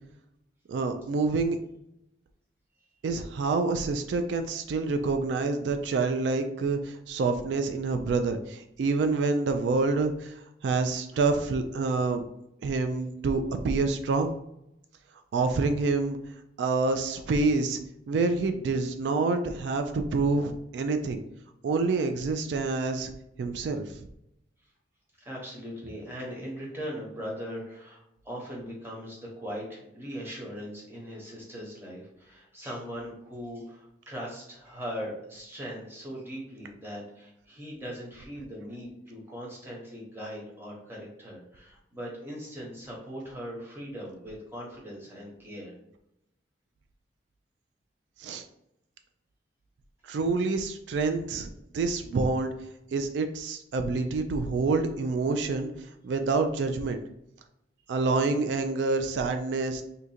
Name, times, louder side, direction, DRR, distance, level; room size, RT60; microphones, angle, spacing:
voice 1, 0.7-1.6 3.0-12.2 12.6-14.3 15.3-16.2 16.6-17.8 18.1-21.2 21.6-23.1 23.4-24.1 48.2-48.5 50.1-51.5 51.7-52.5 52.9-55.7 56.0-57.0 57.9-59.8, right 3 dB, 80° right, 7 dB, 0.3 m, -27 dB
voice 2, 25.2-45.7, equal, 15° right, -4 dB, 0.9 m, -40 dB
2.7 x 2.4 x 4.2 m, 0.82 s
head